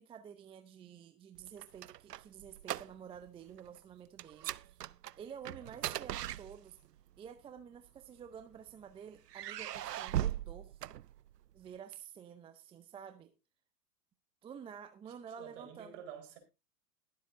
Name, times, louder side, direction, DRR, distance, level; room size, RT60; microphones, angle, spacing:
voice 1, 0.0-4.8 5.2-6.8 7.2-10.8 11.5-13.3 14.4-15.9, right 8 dB, 10° right, 0.6 m, -50 dB
sound 1, 1.4-3.3 3.5-3.8 4.2-7.0 7.9-8.7 9.3-11.6, right 12 dB, 85° right, 0.6 m, -39 dB
voice 2, 5.5-6.0 15.0-16.4, right 8 dB, 50° right, 4.4 m, -51 dB
22.0 x 7.6 x 2.6 m
hypercardioid pair, 110°, 47 cm